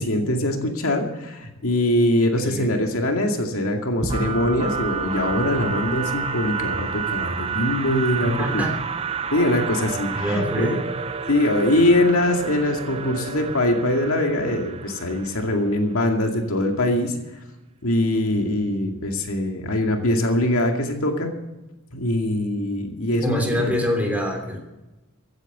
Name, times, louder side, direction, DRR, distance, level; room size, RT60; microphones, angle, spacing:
voice 1, 0.0-8.7 9.3-10.8 11.3-17.2 17.8-21.3 21.9-23.6, left 1 dB, 65° left, 2 dB, 2.3 m, -22 dB
voice 2, 2.4-2.7 8.2-8.7 10.1-10.8 23.2-24.6, equal, 5° right, 2 dB, 3.1 m, -25 dB
sound 1, 4.0-15.8, right 6 dB, 25° right, 0.8 m, -30 dB
15.5 x 9.6 x 8.1 m, 1.0 s
head